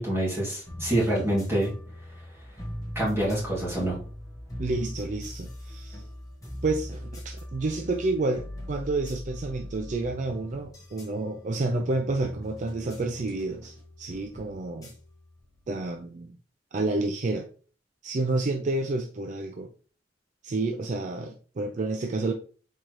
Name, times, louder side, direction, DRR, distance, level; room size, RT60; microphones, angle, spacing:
voice 1, 0.0-1.7 3.0-4.0, right 1 dB, 15° right, -6 dB, 2.1 m, -26 dB
sound 1, 0.7-15.9, left 1 dB, 20° left, 1.3 m, -41 dB
voice 2, 4.6-6.0 6.6-14.9 15.7-16.4 16.7-17.5 18.0-19.7 20.4-22.3, right 2 dB, 40° right, 5 dB, 0.4 m, -29 dB
4.5 x 3.7 x 3.0 m, 0.40 s
head